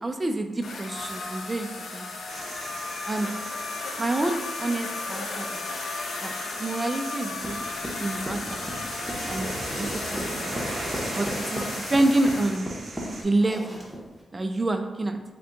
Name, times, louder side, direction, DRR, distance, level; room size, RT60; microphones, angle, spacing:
voice 1, 0.0-1.7 1.9-2.1 3.1-3.3 4.0-5.6 6.2-6.3 6.6-7.6 8.0-8.7 9.3-9.5 9.8-10.6 11.1-12.7 13.2-13.8 14.3-15.2, right 2 dB, 30° right, 6 dB, 0.3 m, -27 dB
sound 1, 0.6-12.6, left 3 dB, 85° left, 0.4 m, -35 dB
sound 2, 2.3-13.2, right 2 dB, 70° right, 0.8 m, -38 dB
sound 3, 7.4-14.2, equal, ahead, 0.9 m, -36 dB
3.5 x 2.3 x 3.8 m, 1.2 s
cardioid pair, 75°, 0 cm